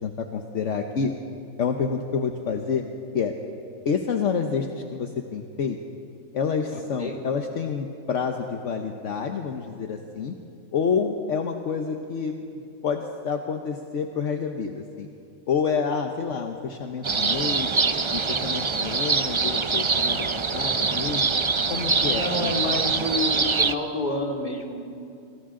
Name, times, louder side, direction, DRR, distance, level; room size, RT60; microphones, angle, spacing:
voice 1, 0.0-1.1 1.6-2.8 3.1-3.3 3.8-5.8 6.3-10.3 10.7-15.1 15.5-17.7 18.1-21.2 21.7-23.1, left 6 dB, 65° left, 4 dB, 1.3 m, -28 dB
voice 2, 6.7-7.2 22.1-24.8, left 1 dB, 35° left, 0 dB, 2.6 m, -29 dB
sound 1, 17.0-23.7, right 4 dB, 35° right, 0.5 m, -24 dB
27.5 x 26.5 x 3.8 m, 2.6 s
omnidirectional pair, 1.4 m